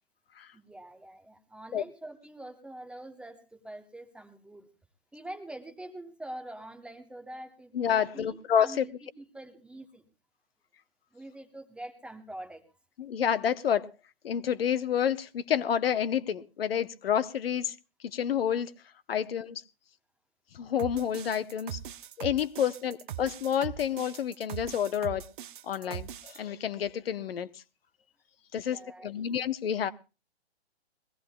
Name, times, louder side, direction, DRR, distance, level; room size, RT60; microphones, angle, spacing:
voice 1, 0.5-4.7 5.1-10.0 11.1-12.6 28.6-29.3, right 1 dB, 5° right, 0.8 m, -45 dB
voice 2, 7.7-8.8 13.0-13.9 14.2-17.7 18.1-18.7 19.1-19.6 20.5-21.8 22.2-25.2 25.6-27.5 28.5-29.9, left 9 dB, 60° left, 0.9 m, -29 dB
sound 1, 20.8-26.4, right 11 dB, 50° right, 0.7 m, -41 dB
22.0 x 16.5 x 2.3 m
hypercardioid pair, 140°, 33 cm